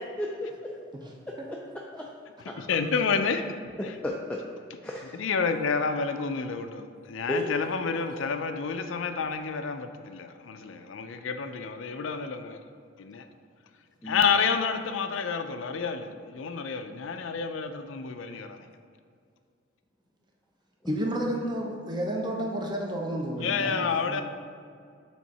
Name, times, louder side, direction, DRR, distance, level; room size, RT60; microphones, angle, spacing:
voice 1, 0.2-0.7 1.3-1.6 1.9-2.1 2.5-2.6 3.8-4.4 4.8-5.2 7.3-7.5 14.0-14.2 20.8-21.0, left 1 dB, 5° left, -2 dB, 0.4 m, -34 dB
voice 2, 2.6-3.4 5.1-12.6 13.0-13.2 14.0-18.7 23.4-24.2, left 5 dB, 80° left, 8 dB, 0.5 m, -29 dB
voice 3, 20.9-24.2, right 1 dB, 25° right, 0 dB, 0.8 m, -31 dB
7.3 x 3.6 x 4.2 m, 2.2 s
head